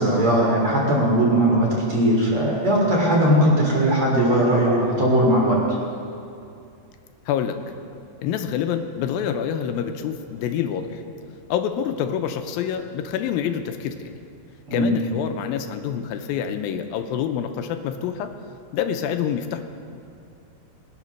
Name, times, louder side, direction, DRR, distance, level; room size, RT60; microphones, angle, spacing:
voice 1, 0.0-5.6 14.7-14.9, right 1 dB, 40° right, -3 dB, 3.6 m, -19 dB
voice 2, 7.3-7.6 8.2-11.0 11.5-14.1 14.7-18.3 18.7-19.6, left 8 dB, 90° left, 7 dB, 2.5 m, -27 dB
20.5 x 8.1 x 6.4 m, 2.5 s
omnidirectional pair, 4.1 m